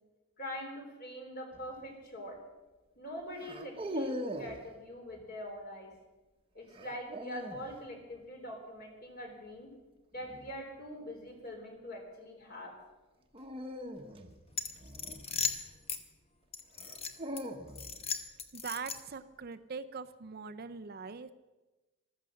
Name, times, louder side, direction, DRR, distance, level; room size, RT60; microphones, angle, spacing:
voice 1, 0.4-2.4 3.0-5.9 6.5-9.7 10.1-12.7, equal, 40° left, 2 dB, 3.7 m, -43 dB
sound 1, 1.5-1.9 3.4-4.6 6.7-7.7 10.2-10.6 13.3-15.7 16.8-18.1, equal, 25° right, 1.0 m, -41 dB
sound 2, 14.5-16.0 16.5-17.4 17.8-19.2, left 5 dB, 25° left, 0.9 m, -37 dB
voice 2, 18.5-21.3, right 5 dB, 45° right, 10 dB, 0.5 m, -42 dB
15.0 x 13.0 x 6.5 m, 1.2 s
head